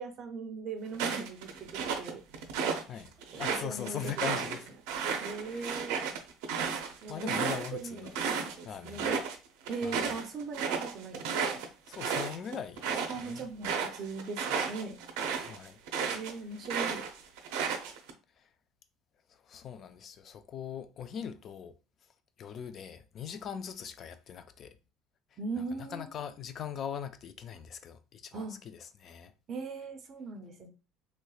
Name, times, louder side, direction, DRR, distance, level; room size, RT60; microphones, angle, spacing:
voice 1, 0.0-2.2 3.3-4.5 5.2-6.1 7.0-9.2 9.7-11.6 13.1-15.0 16.1-17.0 25.4-26.1 28.3-28.6 29.5-30.7, right 4 dB, 30° right, 0.5 m, -40 dB
sound 1, 0.9-2.8 3.2-8.5 8.9-9.4 9.7-16.3 16.6-18.1, right 6 dB, 90° right, 0.6 m, -33 dB
voice 2, 3.4-4.7 5.4-5.7 7.1-8.2 8.6-9.2 9.8-10.1 11.9-13.5 15.4-15.8 18.4-18.5 19.3-21.8 22.4-24.8 25.6-29.3, left 8 dB, 30° left, 0.3 m, -41 dB
3.0 x 3.0 x 2.3 m
cardioid pair, 170°, 0 cm